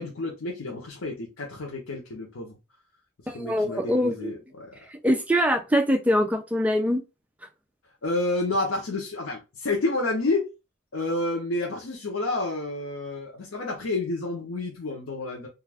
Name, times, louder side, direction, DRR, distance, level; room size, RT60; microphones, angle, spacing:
voice 1, 0.0-2.5 3.3-4.8 8.0-10.5 10.9-15.5, left 2 dB, 85° left, 0.7 m, -29 dB
voice 2, 3.3-4.3 5.0-7.0, equal, 5° right, 0.3 m, -23 dB
2.3 x 2.3 x 3.3 m
head